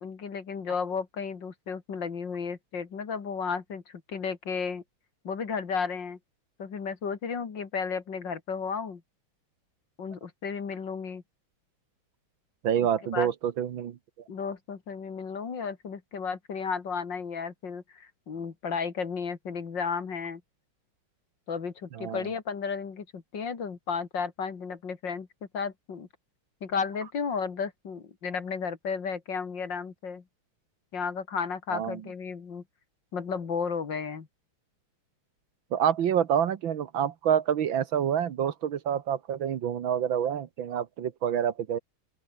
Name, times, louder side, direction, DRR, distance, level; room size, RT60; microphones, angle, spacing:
voice 1, 0.0-4.8 5.2-6.2 6.6-9.0 10.0-11.2 13.1-13.3 14.3-20.4 21.5-25.3 25.5-26.1 26.6-30.2 30.9-32.6 33.1-34.3, left 5 dB, 55° left, 2.8 m, -33 dB
voice 2, 12.6-14.0 21.9-22.3 31.7-32.0 35.7-41.8, right 9 dB, 65° right, 1.9 m, -27 dB
open air
omnidirectional pair, 2.4 m